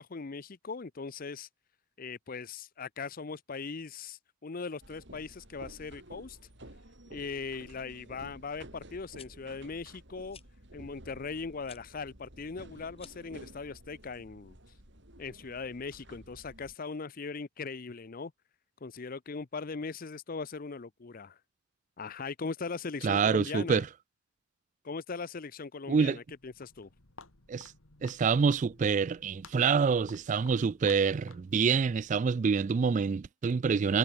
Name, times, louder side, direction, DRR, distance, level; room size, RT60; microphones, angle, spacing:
voice 1, 0.0-1.5 2.0-6.4 7.1-10.4 10.7-14.6 15.2-18.3 18.8-21.4 22.0-23.8 24.8-26.9, left 4 dB, 45° left, 0.6 m, -39 dB
sound 1, 4.8-16.8, right 1 dB, 55° right, 6.1 m, -52 dB
sound 2, 9.1-9.3 10.3-10.5 11.6-11.8 12.9-13.3, left 7 dB, 25° left, 2.1 m, -52 dB
voice 2, 23.0-23.8 25.9-26.2 27.5-27.7 28.0-34.0, right 5 dB, 35° right, 0.3 m, -26 dB
Walk footsteps, 26.2-32.3, left 4 dB, 75° left, 2.8 m, -56 dB
head